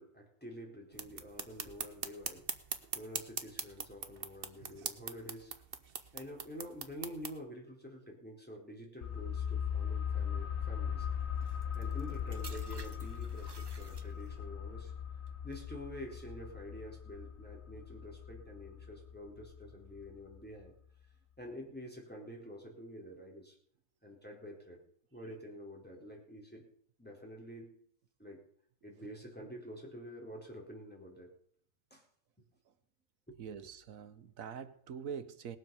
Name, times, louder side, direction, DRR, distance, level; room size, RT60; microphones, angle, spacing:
voice 1, 0.0-2.4 2.9-5.5 6.1-11.1 11.7-14.9 15.4-20.7 21.4-23.6 24.0-24.8 25.1-26.6 27.0-27.8 28.2-28.4 28.8-31.3 31.9-32.0 33.3-33.4, equal, 5° left, -1 dB, 4.0 m, -48 dB
sound 1, 0.9-7.3, right 6 dB, 45° right, 1.2 m, -42 dB
sound 2, 9.0-20.4 20.7-20.8, left 8 dB, 60° left, 1.2 m, -39 dB
sound 3, 11.4-14.5 15.3-15.6, right 3 dB, 25° right, 0.7 m, -54 dB
voice 2, 33.4-35.6, right 7 dB, 85° right, 12 dB, 1.4 m, -45 dB
19.5 x 7.7 x 6.9 m, 0.62 s
omnidirectional pair, 1.4 m